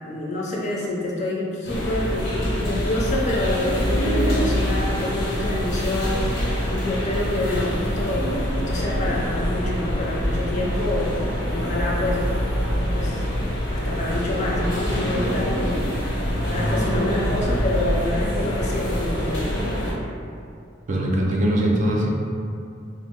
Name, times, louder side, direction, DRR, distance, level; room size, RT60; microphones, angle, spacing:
voice 1, 0.0-11.1 11.5-12.2 12.9-13.2 13.7-19.6, left 1 dB, 40° left, -4 dB, 0.5 m, -27 dB
sound 1, 1.6-19.9, equal, 80° left, 0.9 m, -25 dB
voice 2, 20.9-22.1, right 1 dB, 40° right, -2 dB, 0.4 m, -21 dB
2.8 x 2.0 x 3.5 m, 2.5 s
head